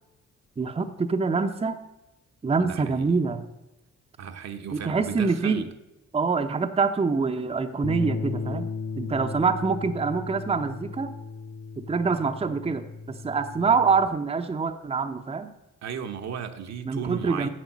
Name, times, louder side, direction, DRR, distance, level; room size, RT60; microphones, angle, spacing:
voice 1, 0.6-1.8 2.4-3.5 4.7-5.6 6.1-8.7 9.0-11.1 11.8-15.5 16.8-17.5, right 4 dB, 20° right, 0.7 m, -25 dB
voice 2, 2.6-3.1 4.2-5.7 15.8-17.5, right 7 dB, 60° right, 1.1 m, -35 dB
Bass guitar, 7.8-14.1, left 5 dB, 50° left, 2.2 m, -35 dB
9.2 x 7.2 x 7.3 m
cardioid pair, 90°, 30 cm